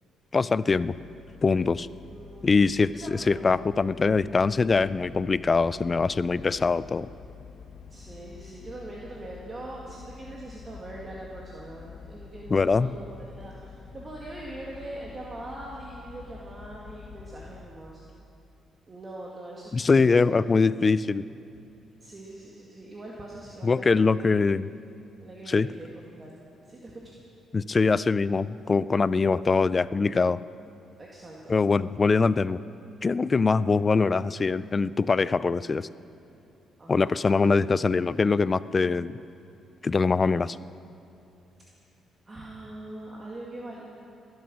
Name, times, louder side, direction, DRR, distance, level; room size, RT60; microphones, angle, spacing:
voice 1, 0.3-0.9 1.4-1.9 2.4-7.1 12.5-13.0 19.7-21.2 23.6-24.7 25.5-25.7 27.5-30.4 31.5-32.6 33.0-35.9 36.9-39.1 39.8-40.6, left 4 dB, 30° left, 17 dB, 0.3 m, -23 dB
sound 1, 0.7-17.6, left 6 dB, 70° left, 1.1 m, -47 dB
voice 2, 2.0-2.5 3.0-3.5 7.9-18.0 18.9-20.6 22.0-24.3 25.2-26.4 26.7-27.1 31.0-31.6 36.8-37.1 42.3-43.8, right 1 dB, 30° right, -4 dB, 2.1 m, -42 dB
21.0 x 9.4 x 6.2 m, 2.8 s
cardioid pair, 90°, 0 cm